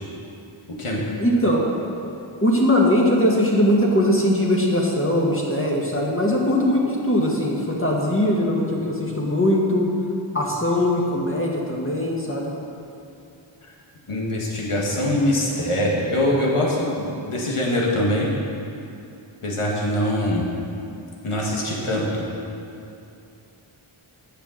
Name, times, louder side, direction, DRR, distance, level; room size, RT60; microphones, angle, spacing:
voice 1, 1.2-1.6 2.4-9.9 10.3-12.5, left 1 dB, 25° left, -3 dB, 1.8 m, -20 dB
voice 2, 14.1-18.3 19.4-20.5 21.2-22.2, left 1 dB, 85° left, -3 dB, 1.7 m, -23 dB
8.9 x 6.7 x 6.5 m, 2.7 s
wide cardioid pair, 65°, 49 cm